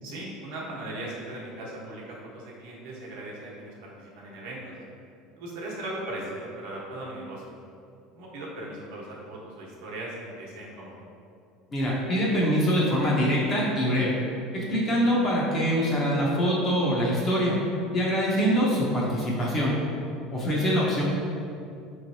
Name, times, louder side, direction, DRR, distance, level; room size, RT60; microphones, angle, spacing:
voice 1, 0.0-4.7 5.3-7.4 8.1-11.0, right 1 dB, 75° right, -4 dB, 1.0 m, -38 dB
voice 2, 11.7-14.2 14.5-17.6 17.9-19.7 20.3-21.0, equal, 25° left, -5 dB, 0.6 m, -24 dB
5.0 x 3.1 x 2.6 m, 2.6 s
cardioid pair, 175°, 0 cm